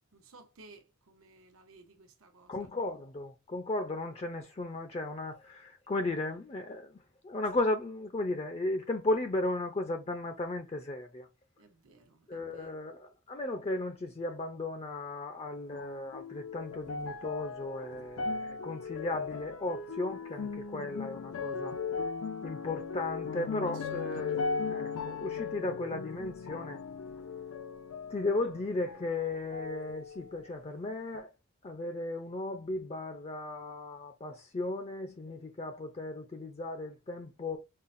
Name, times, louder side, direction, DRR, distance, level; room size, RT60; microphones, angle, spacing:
voice 1, 0.1-2.7 11.6-12.7 23.6-24.8, right 3 dB, 85° right, 0.9 m, -57 dB
voice 2, 2.5-7.0 7.2-11.3 12.3-21.7 22.4-24.4 24.7-26.8 28.1-31.3 31.6-37.6, left 2 dB, 30° left, 0.4 m, -35 dB
sound 1, 15.7-29.2 29.5-30.5 31.1-31.2, left 5 dB, 85° left, 0.5 m, -38 dB
5.5 x 2.1 x 2.5 m
head